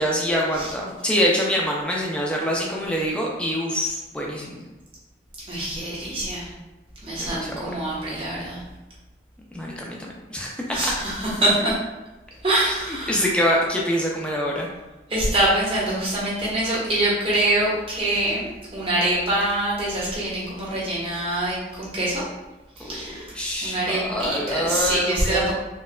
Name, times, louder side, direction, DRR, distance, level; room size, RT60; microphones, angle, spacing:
voice 1, 0.0-4.6 7.2-7.5 7.8-7.9 9.5-10.9 12.6-14.7 22.8-25.5, equal, 5° left, -2 dB, 0.5 m, -25 dB
voice 2, 5.5-6.5 7.0-8.6 10.7-11.7 12.4-13.3 15.1-22.2 22.8-23.4 23.6-25.5, right 1 dB, 30° right, -7 dB, 1.0 m, -24 dB
4.4 x 2.2 x 2.2 m, 1.1 s
head